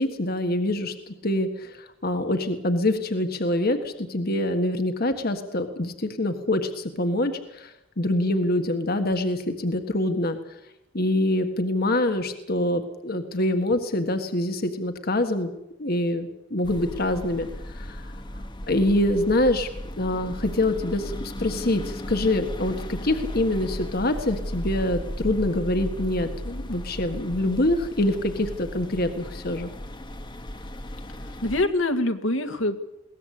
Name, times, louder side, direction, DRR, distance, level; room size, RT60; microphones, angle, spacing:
voice 1, 0.0-10.4 10.9-15.5 15.8-17.5 17.7-18.0 18.7-19.7 20.0-29.7, left 1 dB, 50° left, 7 dB, 1.6 m, -25 dB
sound 1, 16.6-31.6, equal, 25° left, 1.3 m, -36 dB
voice 2, 31.2-32.8, left 2 dB, 75° left, 7 dB, 2.0 m, -25 dB
22.0 x 18.5 x 8.4 m, 0.86 s
head